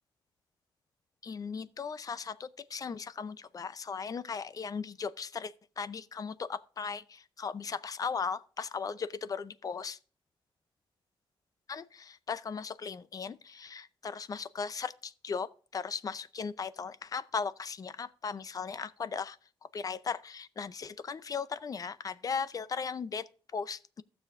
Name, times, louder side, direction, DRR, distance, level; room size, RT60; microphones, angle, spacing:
voice 1, 1.2-10.0 11.7-19.4 19.7-24.0, left 5 dB, 40° left, 0.6 m, -37 dB
15.5 x 7.1 x 2.5 m
cardioid pair, 110°, 9 cm